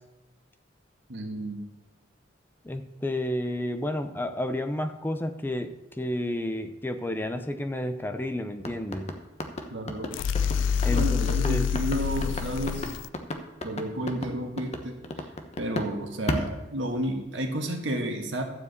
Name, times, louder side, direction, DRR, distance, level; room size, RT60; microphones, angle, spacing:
voice 1, 1.1-1.6 9.7-10.1 10.9-12.9 13.6-15.0 15.6-18.4, right 1 dB, 75° right, 3 dB, 1.7 m, -31 dB
voice 2, 2.6-9.1 10.8-11.7, left 1 dB, 10° left, 7 dB, 0.6 m, -31 dB
sound 1, 8.6-15.9 16.3-17.3, left 1 dB, 35° left, 1.0 m, -33 dB
sound 2, 10.1-13.1, left 7 dB, 75° left, 0.4 m, -27 dB
12.5 x 4.8 x 8.1 m, 1.0 s
head